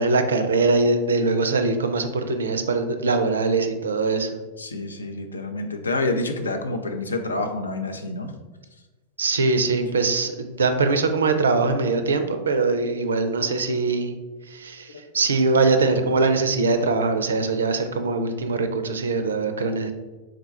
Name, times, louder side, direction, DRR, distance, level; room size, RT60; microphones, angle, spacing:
voice 1, 0.0-4.3 9.2-14.1 14.5-14.9 15.1-19.9, right 3 dB, 70° right, 8 dB, 0.4 m, -22 dB
voice 2, 4.6-8.3 14.9-15.0, left 2 dB, 75° left, 5 dB, 0.4 m, -28 dB
3.6 x 2.2 x 4.4 m, 1.2 s
figure-of-eight pair, 90°, 0 cm